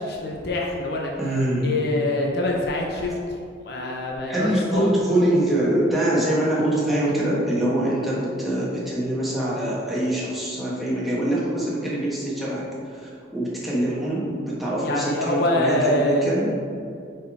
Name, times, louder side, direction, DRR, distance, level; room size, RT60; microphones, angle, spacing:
voice 1, 0.0-1.1 1.6-3.4 3.6-4.8 14.8-16.3, left 1 dB, 55° left, -1 dB, 0.7 m, -25 dB
voice 2, 1.2-1.8 4.3-12.6 12.9-16.5, right 1 dB, ahead, -8 dB, 1.2 m, -24 dB
5.1 x 4.5 x 4.7 m, 2.4 s
head